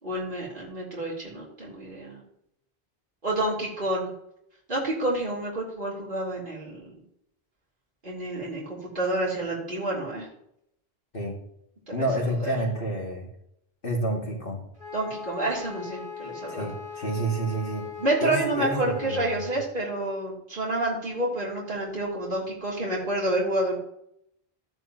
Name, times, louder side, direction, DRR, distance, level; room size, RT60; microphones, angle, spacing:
voice 1, 0.0-2.2 3.2-4.1 4.7-6.9 8.0-10.3 12.0-12.1 12.4-12.5 14.9-16.7 18.0-23.8, right 1 dB, 50° right, -5 dB, 3.5 m, -29 dB
voice 2, 11.9-13.3 13.8-14.6 16.5-17.9 18.2-19.5, right 1 dB, 55° left, -1 dB, 2.7 m, -29 dB
Wind instrument woodwind instrument, 14.8-19.6, left 7 dB, 30° right, 3.1 m, -39 dB
13.0 x 10.5 x 3.0 m, 0.76 s
omnidirectional pair, 1.1 m